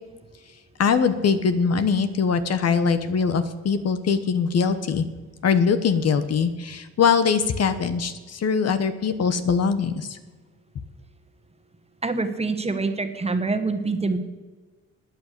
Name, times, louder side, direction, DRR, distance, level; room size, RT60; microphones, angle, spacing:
voice 1, 0.8-5.0 5.4-10.2, left 6 dB, 55° left, 11 dB, 1.3 m, -22 dB
voice 2, 12.0-14.2, right 3 dB, 20° right, 8 dB, 1.6 m, -25 dB
13.5 x 9.4 x 8.6 m, 1.3 s
cardioid pair, 90°, 30 cm